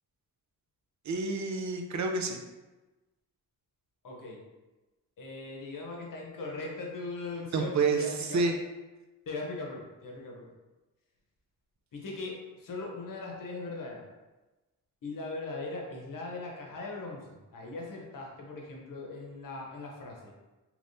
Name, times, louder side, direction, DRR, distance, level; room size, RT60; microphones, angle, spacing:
voice 1, 1.1-2.4 7.5-8.5, right 4 dB, 55° right, 3 dB, 0.5 m, -29 dB
voice 2, 4.0-4.4 5.2-8.4 9.3-10.5 11.9-14.0 15.0-20.3, left 3 dB, 70° left, -1 dB, 0.8 m, -40 dB
3.3 x 3.0 x 2.6 m, 1.1 s
wide cardioid pair, 110°, 34 cm